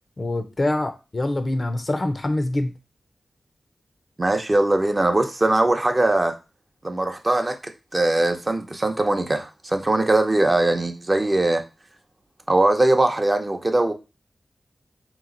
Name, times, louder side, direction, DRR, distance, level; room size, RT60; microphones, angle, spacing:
voice 1, 0.2-2.7, left 1 dB, 40° left, 0.6 m, -25 dB
voice 2, 4.2-6.3 6.8-11.6 12.5-13.9, right 2 dB, 35° right, 0.7 m, -21 dB
3.8 x 3.1 x 3.8 m
cardioid pair, 60°, 0 cm